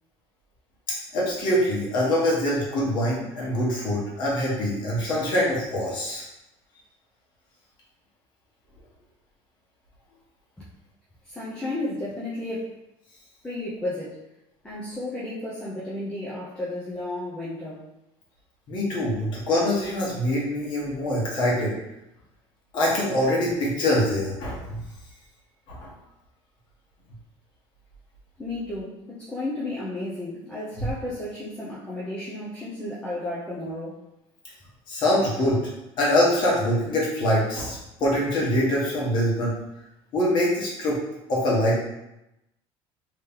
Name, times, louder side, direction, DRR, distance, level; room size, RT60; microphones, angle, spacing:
voice 1, 1.1-6.3 18.7-21.7 22.7-24.8 25.7-25.9 34.9-35.6 36.0-39.5 40.1-41.0 41.3-41.8, left 1 dB, 45° left, -5 dB, 1.3 m, -24 dB
voice 2, 11.2-12.8 13.4-14.2 14.6-17.9 28.4-34.0, left 1 dB, 10° left, -9 dB, 0.6 m, -33 dB
3.2 x 2.9 x 3.6 m, 0.90 s
cardioid pair, 165°, 11 cm